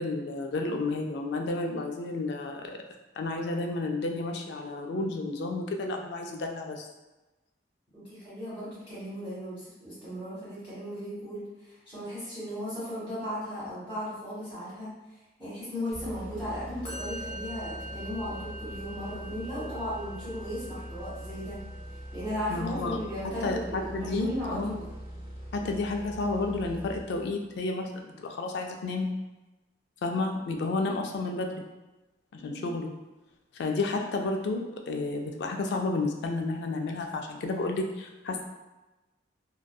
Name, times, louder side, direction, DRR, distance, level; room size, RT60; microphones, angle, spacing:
voice 1, 0.0-2.8 3.2-6.9 22.5-23.0 23.2-24.8 25.5-29.1 30.0-31.6 32.3-32.9 33.6-38.4, left 3 dB, 65° left, 3 dB, 0.3 m, -31 dB
voice 2, 7.9-11.5 11.9-14.9 15.4-21.6 22.1-24.9 32.3-32.7, equal, 10° right, -15 dB, 1.2 m, -36 dB
sound 1, 15.9-27.6, equal, 55° right, 0.6 m, -42 dB
Musical instrument, 16.8-24.1, equal, 35° left, 0.7 m, -45 dB
2.6 x 2.2 x 2.2 m, 1.1 s
head